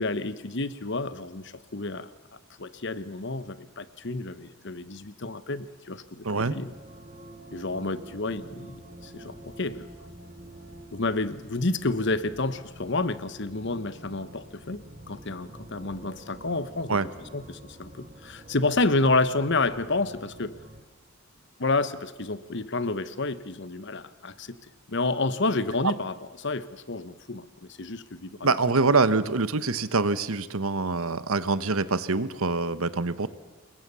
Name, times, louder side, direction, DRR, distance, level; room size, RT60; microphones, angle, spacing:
voice 1, 0.0-2.1 2.6-6.7 7.5-9.9 10.9-17.0 17.3-20.5 21.6-24.6 24.9-28.6, left 3 dB, 55° left, 14 dB, 1.1 m, -29 dB
sound 1, 6.2-20.8, right 1 dB, 30° right, 2.1 m, -47 dB
voice 2, 6.2-6.5 16.9-17.1 28.4-33.3, right 3 dB, 75° right, 14 dB, 1.2 m, -25 dB
27.0 x 22.0 x 7.0 m, 1.4 s
head